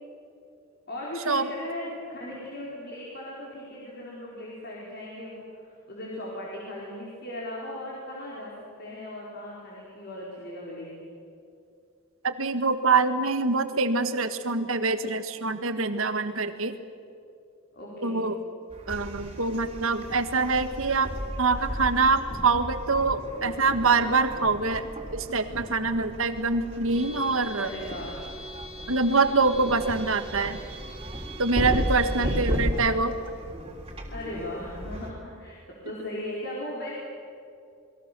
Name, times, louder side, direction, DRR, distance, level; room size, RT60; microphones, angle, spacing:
voice 1, 0.9-8.5 8.8-11.1 17.7-18.3 27.6-28.1 32.0-32.5 34.1-37.0, left 1 dB, 50° left, -4 dB, 4.7 m, -38 dB
voice 2, 12.2-16.8 18.0-18.4 18.9-27.7 28.9-30.6 31.4-33.2, right 4 dB, 70° right, 9 dB, 1.7 m, -25 dB
sound 1, 18.7-35.1, equal, 25° right, 3.5 m, -35 dB
29.0 x 21.5 x 6.9 m, 2.5 s
head